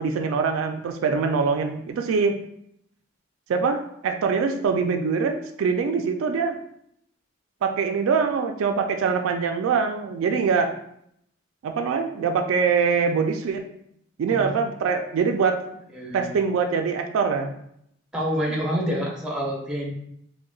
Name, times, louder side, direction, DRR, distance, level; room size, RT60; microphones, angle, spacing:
voice 1, 0.0-2.4 3.5-6.6 7.6-10.7 11.6-13.6 14.2-15.6 16.1-17.5, right 5 dB, 80° right, 5 dB, 0.3 m, -23 dB
voice 2, 15.9-16.3 18.1-19.9, equal, 5° right, -3 dB, 0.6 m, -27 dB
3.7 x 2.1 x 2.3 m, 0.73 s
head